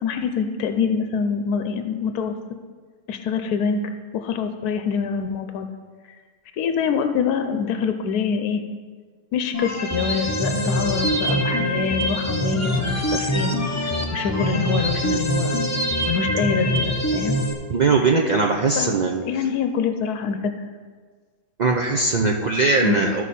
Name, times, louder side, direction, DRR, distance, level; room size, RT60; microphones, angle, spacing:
voice 1, 0.0-2.4 3.1-3.8 4.1-5.7 6.6-8.6 9.3-15.6 16.1-17.4 18.7-18.9 19.2-20.5 22.8-23.1, left 6 dB, 80° left, 7 dB, 1.2 m, -25 dB
sound 1, 9.5-17.5, equal, 25° left, 0.4 m, -24 dB
voice 2, 17.7-19.2 21.6-23.2, right 3 dB, 70° right, 0 dB, 0.4 m, -20 dB
14.0 x 4.8 x 4.2 m, 1.5 s
omnidirectional pair, 1.6 m